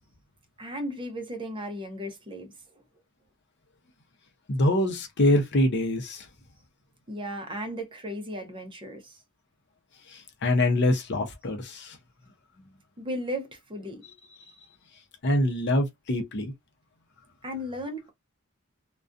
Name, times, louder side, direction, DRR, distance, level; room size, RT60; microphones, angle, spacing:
voice 1, 0.6-2.6 7.1-9.2 13.0-14.0 17.4-18.1, equal, 25° right, 0.6 m, -35 dB
voice 2, 4.5-6.2 10.4-12.0 15.2-16.5, left 1 dB, 55° left, 0.6 m, -24 dB
2.4 x 2.2 x 2.5 m
head